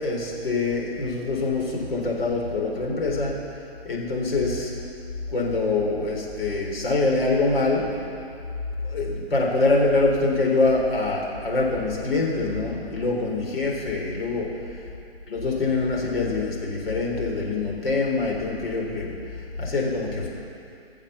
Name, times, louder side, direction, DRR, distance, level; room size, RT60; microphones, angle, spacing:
voice 1, 0.0-3.3 3.8-4.7 5.3-7.9 8.8-14.5 15.3-20.3, left 3 dB, 65° left, -2 dB, 4.0 m, -24 dB
21.5 x 7.3 x 7.1 m, 2.6 s
hypercardioid pair, 145°, 32 cm